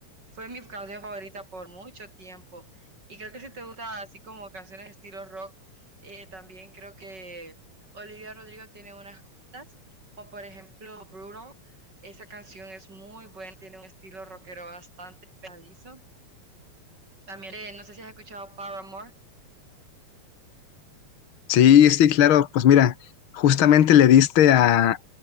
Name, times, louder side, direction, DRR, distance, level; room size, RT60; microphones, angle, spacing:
voice 1, 0.3-2.7 3.1-5.5 6.0-7.6 7.9-9.2 9.5-9.7 10.2-11.5 12.0-15.2 15.4-16.0 17.3-19.1, right 2 dB, 35° right, 7.5 m, -42 dB
voice 2, 21.5-22.9 23.3-25.1, left 10 dB, 50° left, 2.0 m, -16 dB
omnidirectional pair, 3.4 m